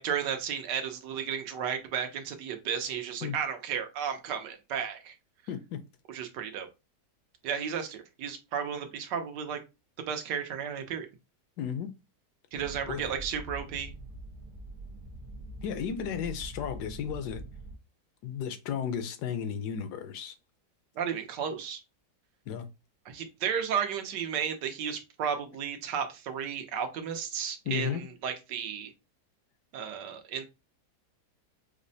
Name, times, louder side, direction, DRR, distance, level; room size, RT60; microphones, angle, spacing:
voice 1, 0.0-5.1 6.1-6.7 7.4-9.6 10.1-11.1 12.5-13.9 21.0-21.8 23.1-28.9 29.7-30.4, right 7 dB, 85° right, 1.4 m, -33 dB
voice 2, 5.5-5.8 11.6-11.9 12.9-13.0 15.6-17.4 18.2-20.3 22.5-22.7 27.7-28.0, left 8 dB, 75° left, 1.1 m, -34 dB
sound 1, 12.5-17.8, right 2 dB, 15° right, 0.5 m, -44 dB
5.0 x 2.0 x 2.7 m
omnidirectional pair, 1.8 m